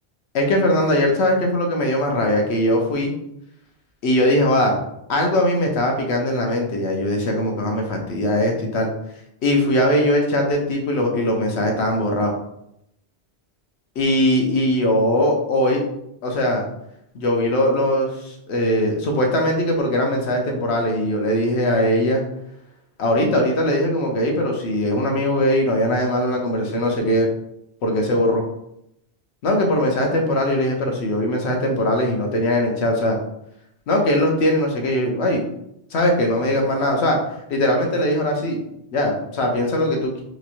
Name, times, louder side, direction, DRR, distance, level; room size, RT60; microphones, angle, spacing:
voice 1, 0.3-3.1 4.0-4.8 5.1-8.9 9.4-12.3 14.0-15.8 16.2-16.6 17.1-22.2 23.0-27.3 27.8-28.4 29.4-33.2 33.9-35.4 35.9-37.2 37.5-38.6 38.9-40.2, left 1 dB, 80° left, 2 dB, 1.0 m, -20 dB
2.9 x 2.9 x 2.5 m, 0.78 s
omnidirectional pair, 1.1 m